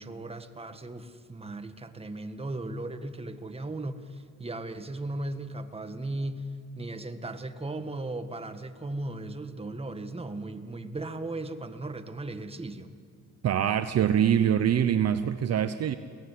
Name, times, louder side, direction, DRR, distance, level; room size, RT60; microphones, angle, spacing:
voice 1, 0.0-12.9, right 2 dB, 20° right, 8 dB, 1.7 m, -37 dB
voice 2, 13.4-15.9, right 9 dB, 55° right, 11 dB, 0.8 m, -24 dB
23.0 x 17.5 x 10.0 m, 2.2 s
cardioid pair, 90°, 30 cm